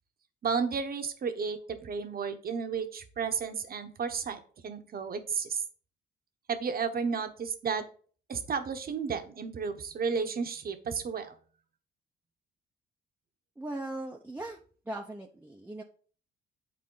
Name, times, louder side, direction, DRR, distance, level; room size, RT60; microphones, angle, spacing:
voice 1, 0.4-5.6 6.5-7.8 8.3-11.3, right 5 dB, 50° right, 7 dB, 1.1 m, -33 dB
voice 2, 13.6-14.6 14.9-15.8, right 1 dB, 10° right, 1 dB, 0.8 m, -39 dB
8.7 x 4.1 x 3.9 m, 0.42 s
cardioid pair, 90°, 20 cm